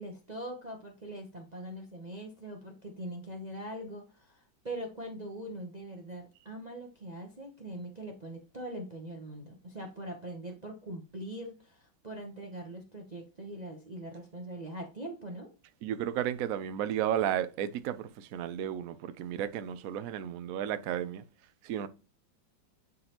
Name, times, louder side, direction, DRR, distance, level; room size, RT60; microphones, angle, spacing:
voice 1, 0.0-15.5, right 1 dB, 35° right, 0.7 m, -42 dB
voice 2, 15.8-21.2 21.6-21.9, right 10 dB, 75° right, 0.8 m, -33 dB
9.5 x 3.9 x 2.9 m
omnidirectional pair, 2.1 m